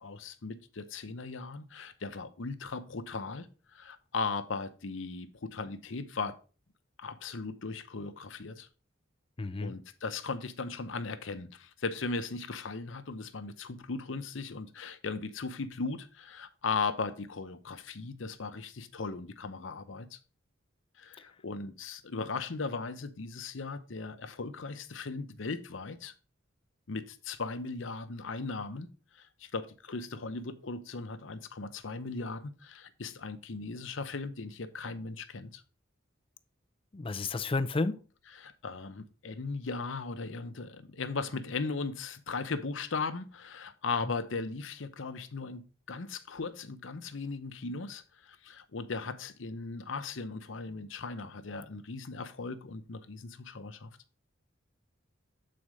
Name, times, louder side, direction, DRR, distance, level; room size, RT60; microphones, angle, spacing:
voice 1, 0.0-3.5 3.7-6.4 7.0-8.7 9.6-20.2 21.0-26.1 26.9-35.6 38.3-53.9, left 4 dB, 75° left, 0.8 m, -38 dB
voice 2, 9.4-9.7 36.9-38.0, left 3 dB, 30° left, 0.5 m, -31 dB
7.8 x 4.3 x 4.8 m
head